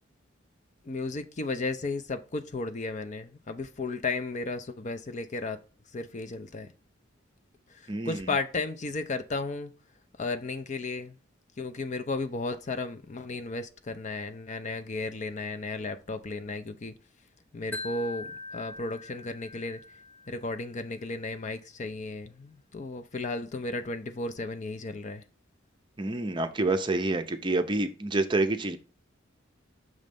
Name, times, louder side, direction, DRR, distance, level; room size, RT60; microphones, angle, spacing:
voice 1, 0.9-5.6 5.9-6.7 8.1-9.7 10.2-11.1 11.6-16.9 17.5-18.3 18.5-19.8 20.3-25.2, left 3 dB, 35° left, 0.5 m, -34 dB
voice 2, 7.9-8.3 26.0-28.8, right 2 dB, 25° right, 0.6 m, -28 dB
Wind chime, 17.7-20.8, left 2 dB, 10° left, 0.9 m, -42 dB
6.3 x 3.2 x 5.2 m
head